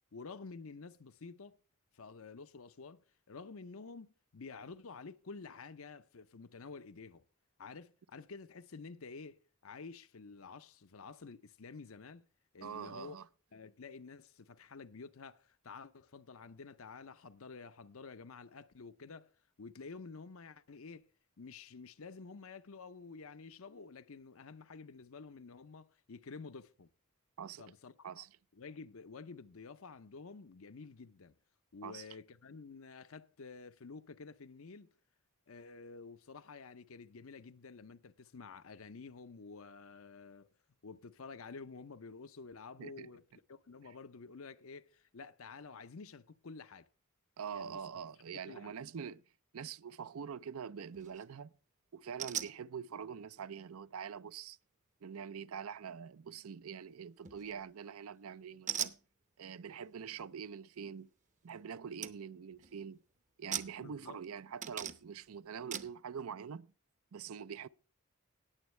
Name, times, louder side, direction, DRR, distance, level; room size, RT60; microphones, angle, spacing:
voice 1, 0.1-1.6 1.9-7.2 7.6-12.2 12.5-13.2 13.5-19.3 19.6-21.1 21.4-26.9 27.6-28.2 28.5-31.3 31.7-34.9 35.5-40.5 40.8-43.2 43.5-46.9 47.5-47.8 48.3-48.7 63.8-64.2, left 4 dB, 70° left, 0.7 m, -50 dB
voice 2, 12.6-13.2 27.4-27.7 28.0-28.3 31.8-32.0 42.8-43.1 47.4-49.2 49.5-51.5 51.9-54.6 55.0-58.9 59.4-61.1 61.4-63.0 63.4-66.7 67.1-67.7, right 7 dB, 75° right, 0.5 m, -44 dB
sound 1, 50.9-51.2 52.2-52.6 57.2-57.7 58.7-59.0 61.5-61.6 62.0-62.2 62.5-62.9 63.5-64.2 64.6-65.2 65.7-65.9, right 9 dB, 35° right, 0.7 m, -40 dB
18.5 x 7.2 x 3.2 m
head